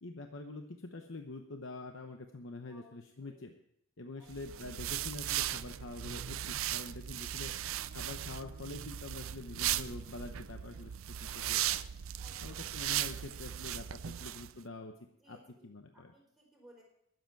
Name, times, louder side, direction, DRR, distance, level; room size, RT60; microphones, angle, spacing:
voice 1, 0.0-3.5 4.0-7.5 7.9-10.9 11.2-11.8 12.4-14.9 15.3-15.4 15.6-16.1, left 2 dB, 65° left, 5 dB, 0.9 m, -45 dB
voice 2, 2.7-3.4 4.1-4.6 7.4-7.8 12.2-12.6 13.3-13.6 15.2-16.8, equal, ahead, -3 dB, 4.5 m, -62 dB
sound 1, 4.3-14.5, right 12 dB, 75° right, 0.5 m, -37 dB
21.0 x 7.9 x 4.6 m, 0.75 s
head